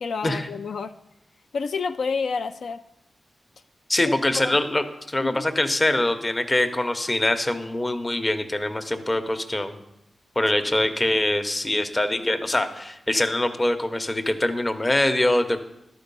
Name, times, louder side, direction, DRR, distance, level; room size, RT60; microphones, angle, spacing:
voice 1, 0.0-0.9 1.5-2.8 4.1-4.2 4.4-4.6 5.2-5.4, left 5 dB, 85° left, 9 dB, 0.3 m, -29 dB
voice 2, 3.9-9.8 10.4-15.6, left 1 dB, 25° left, 8 dB, 0.7 m, -23 dB
12.0 x 4.4 x 5.3 m, 0.85 s
wide cardioid pair, 105°, 0 cm